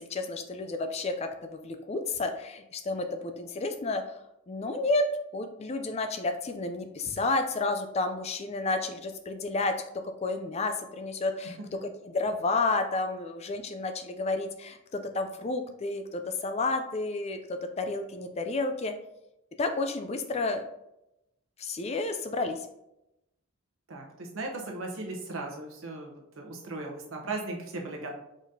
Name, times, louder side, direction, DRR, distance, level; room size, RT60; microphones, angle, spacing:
voice 1, 0.0-4.0 4.5-5.1 5.3-9.7 10.2-18.9 19.6-20.6 21.6-22.7, left 3 dB, 30° left, 7 dB, 0.3 m, -31 dB
voice 2, 23.9-28.1, right 2 dB, 60° right, 1 dB, 0.9 m, -37 dB
5.0 x 4.0 x 2.7 m, 0.87 s
head